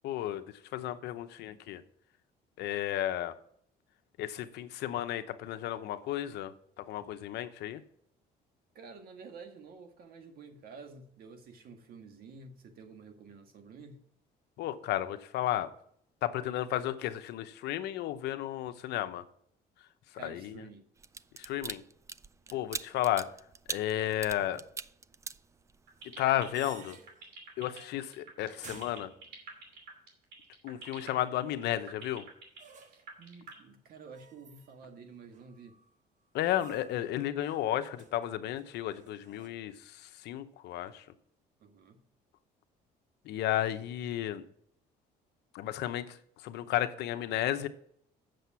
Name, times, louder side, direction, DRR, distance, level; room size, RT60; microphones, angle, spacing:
voice 1, 0.0-0.4 0.7-1.8 2.6-3.4 4.2-7.8 14.6-15.7 16.2-19.2 20.2-20.6 21.4-21.8 22.5-23.3 23.7-24.6 26.2-27.0 27.6-29.1 30.6-32.2 36.3-41.1 43.2-44.4 45.5-47.7, left 12 dB, 80° left, 11 dB, 0.8 m, -33 dB
voice 2, 8.7-14.0 20.2-20.9 22.5-22.7 32.9-35.8 41.6-42.0, right 4 dB, 60° right, 6 dB, 1.7 m, -50 dB
sound 1, 21.0-26.0 26.4-26.6, right 4 dB, 20° right, 0.3 m, -41 dB
sound 2, 25.9-33.5, right 5 dB, 85° right, 2.7 m, -47 dB
sound 3, 26.0-27.3 27.7-28.1 28.4-29.7 32.6-33.2 34.1-35.0 35.3-35.9 36.5-37.1 37.4-39.5, right 6 dB, 45° right, 1.1 m, -55 dB
7.9 x 6.8 x 5.7 m, 0.66 s
cardioid pair, 110°, 17 cm